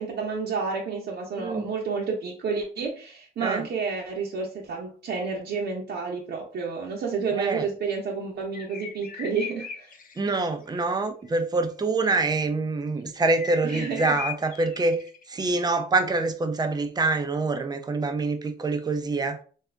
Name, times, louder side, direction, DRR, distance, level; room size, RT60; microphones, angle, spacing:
voice 1, 0.0-9.9 13.6-14.2, right 5 dB, 60° right, 0.8 m, -30 dB
voice 2, 1.4-1.7 3.4-3.6 7.3-7.7 10.2-15.0 15.3-19.4, right 3 dB, 20° right, 0.5 m, -25 dB
sound 1, 8.5-10.8 13.3-15.2, left 7 dB, 45° left, 0.6 m, -38 dB
2.7 x 2.4 x 3.4 m
cardioid pair, 90°, 20 cm